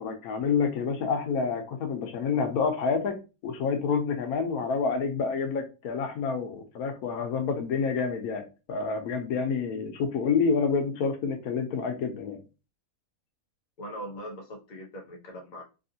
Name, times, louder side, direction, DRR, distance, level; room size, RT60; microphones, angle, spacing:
voice 1, 0.0-3.2 3.4-8.4 8.7-12.4, left 5 dB, 90° left, 4 dB, 1.2 m, -28 dB
voice 2, 13.8-15.6, equal, 45° left, 0 dB, 0.6 m, -40 dB
3.6 x 2.4 x 2.6 m, 0.30 s
omnidirectional pair, 1.5 m